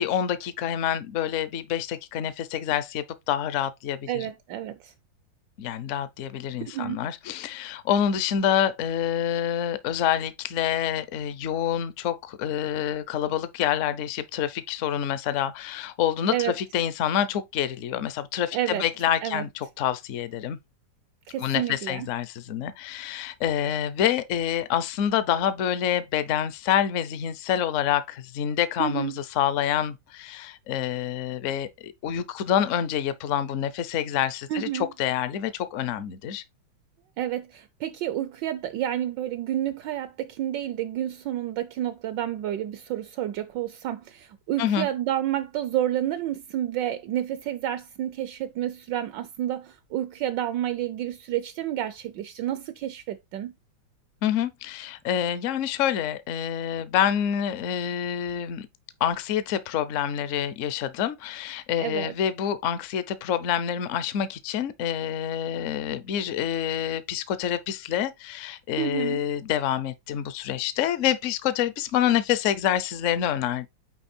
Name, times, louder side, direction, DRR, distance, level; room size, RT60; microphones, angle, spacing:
voice 1, 0.0-4.3 5.6-20.6 21.4-36.4 44.6-44.9 54.2-58.7 59.0-73.7, left 10 dB, 60° left, 0.8 m, -27 dB
voice 2, 4.1-4.9 6.7-7.0 16.3-16.5 18.5-18.8 19.2-19.4 21.3-22.1 28.8-29.2 34.5-34.9 37.2-53.5 61.8-62.1 68.8-69.2, right 12 dB, 75° right, 1.2 m, -30 dB
9.0 x 3.2 x 4.3 m
omnidirectional pair, 2.1 m